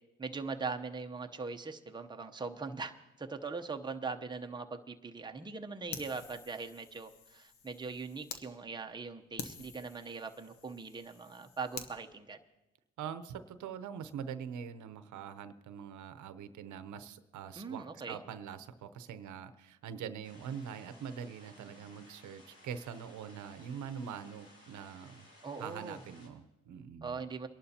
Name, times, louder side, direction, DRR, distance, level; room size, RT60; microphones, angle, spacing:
voice 1, 0.2-12.4 17.6-18.2 25.4-26.0 27.0-27.5, right 4 dB, 15° right, 4 dB, 0.8 m, -41 dB
Fire, 5.9-8.4 8.9-9.0 9.4-11.9, left 6 dB, 90° left, 1.0 m, -48 dB
voice 2, 13.0-25.3 25.6-27.2, right 7 dB, 75° right, 11 dB, 0.8 m, -44 dB
sound 1, 20.2-26.3, left 1 dB, 50° left, 5.1 m, -59 dB
23.5 x 11.5 x 2.8 m, 1.0 s
cardioid pair, 90°, 30 cm